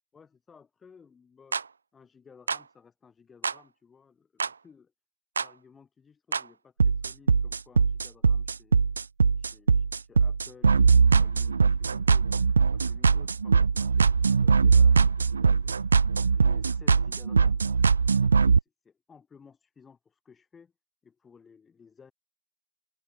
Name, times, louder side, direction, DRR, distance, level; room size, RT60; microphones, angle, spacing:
voice 1, 0.1-1.6 1.9-4.9 5.4-8.8 9.4-12.3 12.7-15.9 16.4-17.6 18.2-20.7 21.0-22.1, left 6 dB, 20° left, 5.5 m, -56 dB
sound 1, 1.5-1.6 2.5-2.6 3.4-3.5 4.4-4.5 5.4-5.5 6.3-6.4 6.8-18.6, right 5 dB, 75° right, 0.5 m, -21 dB
figure-of-eight pair, 90°, 0 cm